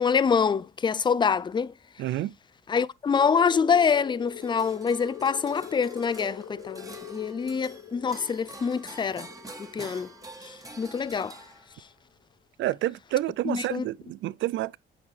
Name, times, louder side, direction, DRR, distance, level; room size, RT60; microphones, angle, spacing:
voice 1, 0.0-1.7 2.7-9.3 9.7-10.1 10.8-11.3 13.5-13.8, left 6 dB, 25° left, 0.4 m, -25 dB
voice 2, 2.0-2.3 12.6-14.8, right 14 dB, 70° right, 0.4 m, -29 dB
sound 1, 3.1-11.5, left 11 dB, 85° left, 1.0 m, -44 dB
sound 2, 4.3-12.0, right 2 dB, 15° right, 1.7 m, -46 dB
8.7 x 6.4 x 3.2 m
cardioid pair, 90°, 20 cm